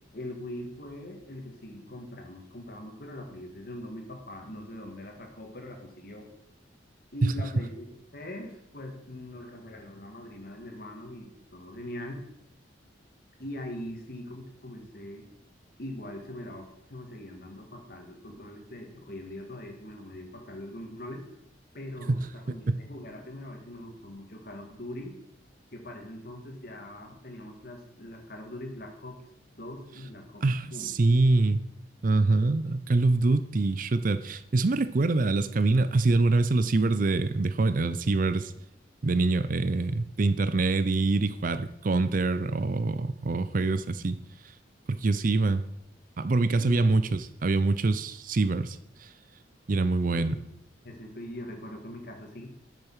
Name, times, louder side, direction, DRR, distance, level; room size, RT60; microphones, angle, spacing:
voice 1, 0.1-6.3 7.1-7.9 8.1-12.2 13.4-15.3 15.8-21.3 21.7-25.2 25.7-29.2 29.6-30.4 30.7-30.9 46.6-46.8 50.0-50.2 50.8-52.5, left 1 dB, 50° left, 3 dB, 1.8 m, -42 dB
voice 2, 30.4-31.6 32.0-38.5 39.0-44.2 44.9-45.6 46.2-49.1 49.7-50.4, right 3 dB, 45° right, 12 dB, 0.5 m, -25 dB
8.4 x 6.5 x 6.2 m, 0.77 s
head